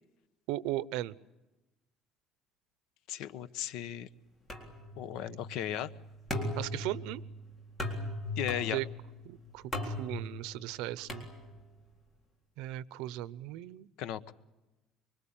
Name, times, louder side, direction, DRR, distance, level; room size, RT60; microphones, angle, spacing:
voice 1, 0.5-1.1 6.6-7.2 8.7-8.9 9.2-11.3 12.6-13.9, right 15 dB, 85° right, 18 dB, 0.8 m, -37 dB
voice 2, 3.1-4.1 5.0-5.9 8.4-8.8 14.0-14.3, left 11 dB, 70° left, 14 dB, 1.1 m, -36 dB
sound 1, 4.5-11.9, left 1 dB, 15° left, 3.9 m, -39 dB
25.0 x 23.5 x 8.9 m, 1.1 s
cardioid pair, 165°, 0 cm